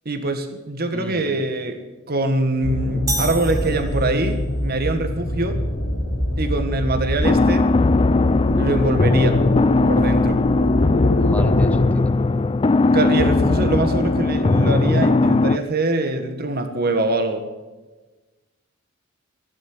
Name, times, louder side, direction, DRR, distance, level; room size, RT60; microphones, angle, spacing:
voice 1, 0.0-1.8 2.1-5.6 6.4-7.7 8.6-9.4 9.9-10.4 12.9-17.4, right 2 dB, 45° right, 8 dB, 1.6 m, -23 dB
voice 2, 0.9-1.4 11.2-12.1, left 1 dB, 5° left, 10 dB, 0.9 m, -34 dB
sound 1, 2.6-11.9, left 1 dB, 60° left, 2.2 m, -25 dB
sound 2, 3.1-4.5, right 2 dB, 15° right, 1.6 m, -30 dB
sound 3, 7.2-15.6, left 3 dB, 25° left, 0.4 m, -18 dB
16.0 x 11.5 x 7.7 m, 1.2 s
head